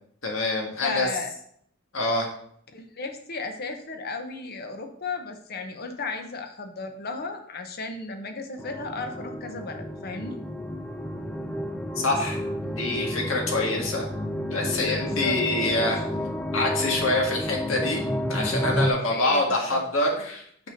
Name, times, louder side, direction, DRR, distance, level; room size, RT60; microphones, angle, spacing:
voice 1, 0.2-1.1 1.9-2.3 12.0-14.0 14.5-16.0 16.5-18.0 18.3-20.4, left 2 dB, 80° left, 0 dB, 1.7 m, -26 dB
voice 2, 0.8-1.3 2.7-10.4 15.0-15.4 19.1-19.4 19.7-19.8, left 3 dB, 50° left, 6 dB, 0.9 m, -34 dB
sound 1, 8.6-18.9, equal, 5° left, 0.4 m, -30 dB
5.8 x 4.3 x 5.1 m, 0.65 s
head